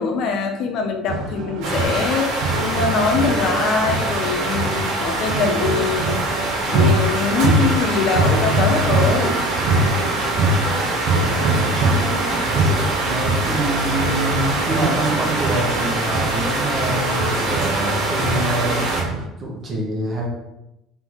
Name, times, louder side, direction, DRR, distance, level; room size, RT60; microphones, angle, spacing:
voice 1, 0.0-6.2 6.7-9.4, left 5 dB, 50° left, 4 dB, 0.5 m, -23 dB
sound 1, 1.1-19.3, right 2 dB, 55° right, 0.6 m, -24 dB
sound 2, 1.6-19.0, right 2 dB, 80° right, 1.5 m, -24 dB
voice 2, 11.6-11.9 13.0-18.8 19.4-20.3, right 1 dB, 30° right, -2 dB, 1.0 m, -26 dB
3.9 x 3.5 x 3.1 m, 0.88 s
cardioid pair, 160°, 0 cm